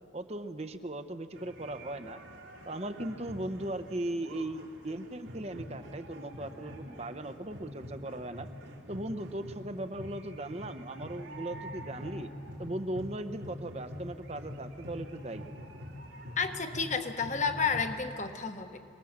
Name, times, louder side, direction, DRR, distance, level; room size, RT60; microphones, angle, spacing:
voice 1, 0.1-2.2 2.7-8.5 8.9-12.3 12.6-15.5, right 1 dB, 30° right, 9 dB, 0.9 m, -38 dB
sound 1, 1.3-18.1, equal, 85° right, 3.6 m, -45 dB
voice 2, 16.4-18.8, left 5 dB, 35° left, 7 dB, 1.3 m, -31 dB
27.0 x 20.0 x 7.4 m, 2.4 s
head